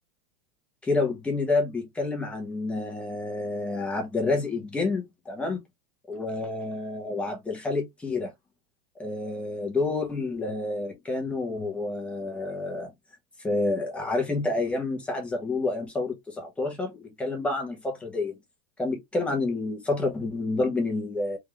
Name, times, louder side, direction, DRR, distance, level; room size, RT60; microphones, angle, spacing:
voice 1, 0.8-5.6 6.1-8.3 9.0-12.9 13.4-18.4 18.8-21.4, left 3 dB, 5° left, 1.1 m, -29 dB
3.6 x 3.2 x 3.1 m
supercardioid pair, 170°, 20 cm